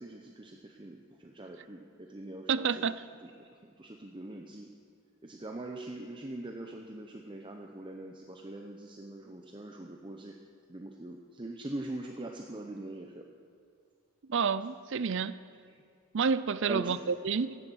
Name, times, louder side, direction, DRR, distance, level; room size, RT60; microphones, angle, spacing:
voice 1, 0.0-2.8 3.2-4.7 5.2-10.3 10.7-13.2 15.7-15.8 16.7-17.1, right 1 dB, 20° right, 2 dB, 0.7 m, -42 dB
voice 2, 2.5-3.1 14.3-15.4 16.1-17.6, right 5 dB, 55° right, 15 dB, 0.5 m, -29 dB
16.0 x 11.0 x 6.3 m, 2.3 s
head